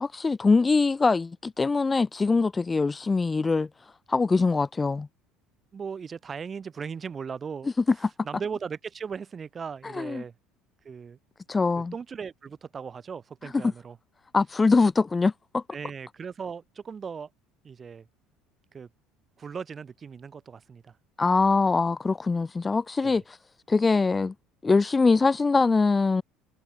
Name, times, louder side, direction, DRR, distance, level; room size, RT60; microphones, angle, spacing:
voice 1, 0.0-3.7 4.1-5.1 9.9-10.2 11.5-11.9 14.3-15.6 21.2-23.4 23.7-24.3 24.6-26.2, left 4 dB, 20° left, 1.4 m, -23 dB
voice 2, 5.7-7.7 8.2-10.3 10.8-11.2 11.9-14.0 15.7-17.3 17.6-18.1 18.7-18.9 19.4-21.0 23.0-23.2, right 6 dB, 35° right, 5.1 m, -37 dB
hypercardioid pair, 70°, 0 cm